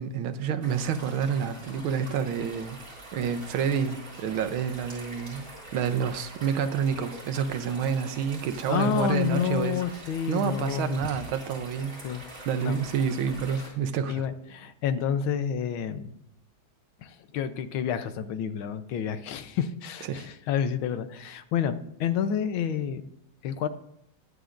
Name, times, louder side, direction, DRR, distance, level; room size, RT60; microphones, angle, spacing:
voice 1, 0.0-2.8 3.1-12.0 12.4-14.3 20.1-20.3, right 7 dB, 85° right, 9 dB, 1.6 m, -29 dB
sound 1, 0.6-13.7, right 1 dB, 40° right, 4.3 m, -45 dB
voice 2, 8.7-11.0 12.0-12.2 12.6-12.8 13.6-13.7 14.1-16.1 17.0-21.7 22.0-23.0 23.4-23.7, left 8 dB, 80° left, 11 dB, 1.6 m, -29 dB
21.0 x 8.2 x 2.5 m, 0.75 s
omnidirectional pair, 2.2 m